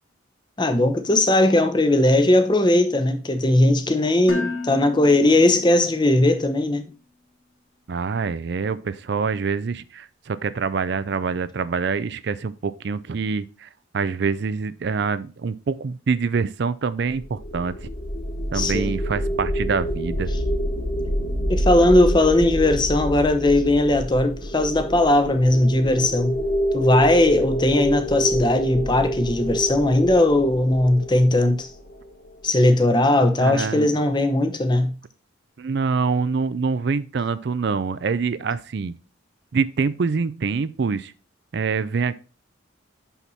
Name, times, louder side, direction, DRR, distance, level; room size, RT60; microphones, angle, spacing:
voice 1, 0.6-6.9 18.5-18.9 21.5-26.4 26.7-31.7 32.4-34.9, left 1 dB, 20° left, 0.8 m, -18 dB
Dishes pots and pans, 4.3-6.3, left 3 dB, 75° left, 1.2 m, -33 dB
voice 2, 7.9-17.9 18.5-20.3 33.4-33.9 35.6-38.9 39.5-41.1 41.5-42.1, right 5 dB, 55° right, 0.4 m, -25 dB
sound 1, 17.2-32.3, equal, 45° left, 1.8 m, -27 dB
6.0 x 5.7 x 4.1 m
head